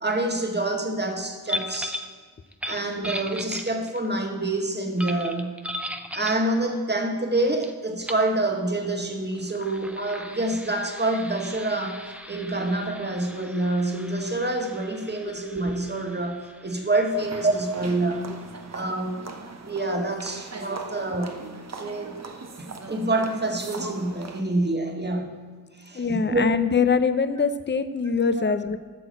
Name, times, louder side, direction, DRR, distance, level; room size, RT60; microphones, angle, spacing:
voice 1, 0.0-2.0 2.6-5.6 6.1-12.0 12.3-18.3 18.7-19.2 19.6-21.4 21.8-22.2 22.6-25.4 25.8-26.4 28.4-28.5, right 2 dB, 30° right, 3 dB, 1.8 m, -27 dB
sound 1, 1.5-2.1 2.5-4.1 5.0-6.5 7.6-7.7 8.0-8.3 9.3-18.6, equal, 5° right, 0.8 m, -38 dB
sound 2, 17.1-24.4, right 3 dB, 50° right, 1.1 m, -40 dB
voice 2, 25.9-28.8, left 5 dB, 30° left, 12 dB, 0.7 m, -23 dB
9.2 x 6.2 x 7.8 m, 1.5 s
cardioid pair, 50°, 34 cm